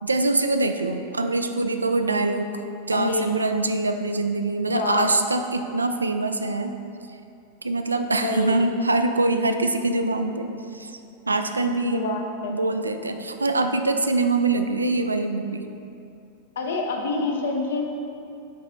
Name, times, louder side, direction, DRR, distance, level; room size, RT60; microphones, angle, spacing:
voice 1, 0.0-2.6 2.9-6.8 7.6-11.0 11.3-12.0 12.5-15.7, right 2 dB, 80° right, 7 dB, 0.3 m, -24 dB
voice 2, 2.9-3.3 4.7-5.2 8.2-8.6 11.9-12.6 16.6-17.8, left 3 dB, 60° left, 2 dB, 0.7 m, -27 dB
9.6 x 3.8 x 3.1 m, 2.7 s
figure-of-eight pair, 90°, 0 cm